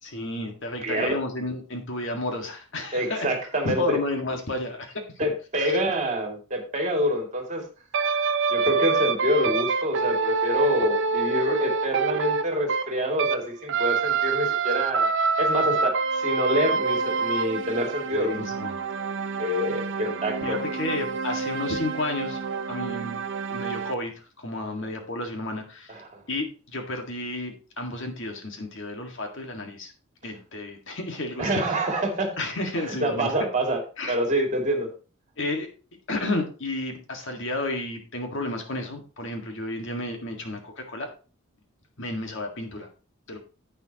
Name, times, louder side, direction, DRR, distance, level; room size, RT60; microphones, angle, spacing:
voice 1, 0.0-3.3 3.6-5.0 5.6-5.8 18.1-18.8 20.4-22.4 22.7-23.2 23.5-26.0 26.3-29.9 30.2-31.5 32.4-33.3 34.0-34.1 35.4-35.7 36.1-41.1 42.0-42.9 43.3-43.4, left 2 dB, 55° left, 3 dB, 1.8 m, -32 dB
voice 2, 0.8-1.1 2.9-4.0 5.2-7.6 8.5-15.1 15.4-18.4 19.4-20.6 25.9-26.2 31.4-32.4 32.8-33.8 34.1-34.9, equal, 30° right, 2 dB, 2.5 m, -26 dB
sound 1, 7.9-13.4 13.7-23.9, right 4 dB, 55° right, 0.6 m, -26 dB
10.5 x 8.9 x 2.9 m, 0.35 s
head